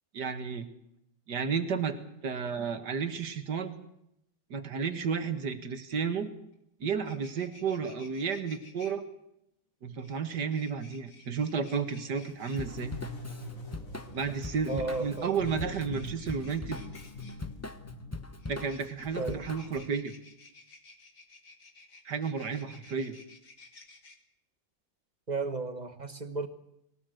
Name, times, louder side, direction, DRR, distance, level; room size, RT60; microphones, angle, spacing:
voice 1, 0.1-0.7 1.3-3.7 4.5-6.3 6.8-9.0 9.8-12.9 14.1-16.8 18.5-20.1 22.1-23.2, right 6 dB, 65° right, 9 dB, 2.3 m, -32 dB
sound 1, 6.5-6.6 6.9-8.9 10.0-12.6 14.0-17.4 18.4-24.2, left 3 dB, 60° left, 2.9 m, -55 dB
sound 2, 12.3-19.1, left 1 dB, 45° left, 3.0 m, -44 dB
Drum kit / Drum, 12.5-19.9, left 2 dB, 15° left, 0.5 m, -42 dB
voice 2, 14.7-15.3 19.2-19.5 25.3-26.5, right 3 dB, 25° right, 10 dB, 1.3 m, -34 dB
22.0 x 17.5 x 7.9 m, 0.79 s
omnidirectional pair, 2.0 m